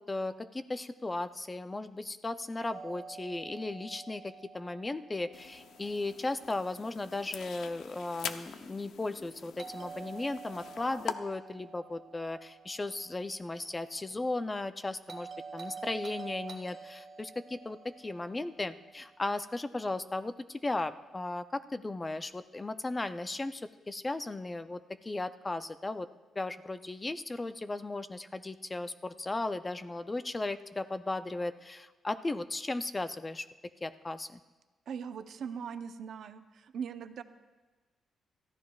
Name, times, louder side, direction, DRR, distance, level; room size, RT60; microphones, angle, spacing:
voice 1, 0.0-26.1 26.4-33.5 33.8-34.4, left 2 dB, 15° left, 11 dB, 0.4 m, -36 dB
Doorbell, 2.7-6.7 9.6-13.8 15.1-19.5, right 5 dB, 35° right, 1.4 m, -48 dB
sound 1, 5.3-11.1, left 7 dB, 70° left, 0.6 m, -44 dB
voice 2, 34.9-37.2, right 7 dB, 65° right, 9 dB, 0.6 m, -40 dB
28.5 x 14.0 x 2.3 m, 1.2 s
cardioid pair, 145°, 0 cm